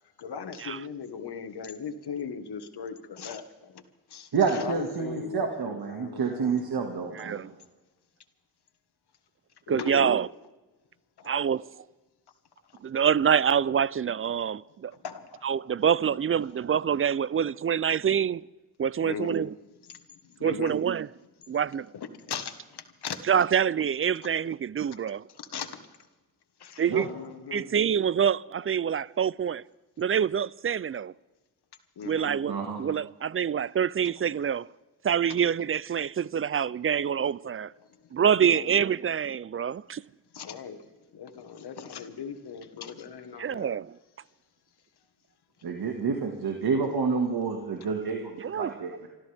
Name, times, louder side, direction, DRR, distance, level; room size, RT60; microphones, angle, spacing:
voice 1, 0.2-3.8 4.1-6.8 9.7-10.2 11.2-11.4 15.0-15.4 16.5-16.6 19.0-19.4 19.9-20.0 20.4-20.8 21.9-23.2 24.9-25.0 25.4-25.8 26.6-27.7 32.0-32.3 38.5-38.8 40.3-40.8 41.1-43.8, left 6 dB, 75° left, 1.7 m, -39 dB
voice 2, 4.3-7.4 26.9-27.1 32.4-32.8 45.6-49.1, right 5 dB, 70° right, 2.0 m, -29 dB
voice 3, 7.2-7.5 9.7-10.3 11.2-11.7 12.8-14.9 15.4-18.5 18.8-19.5 20.4-21.1 21.5-21.9 23.3-25.2 26.8-27.1 27.5-29.6 30.0-31.1 32.0-34.7 35.0-37.7 38.1-40.0 43.4-44.0 48.4-48.8, right 8 dB, 35° right, 0.4 m, -26 dB
27.5 x 13.5 x 3.5 m
cardioid pair, 50°, 40 cm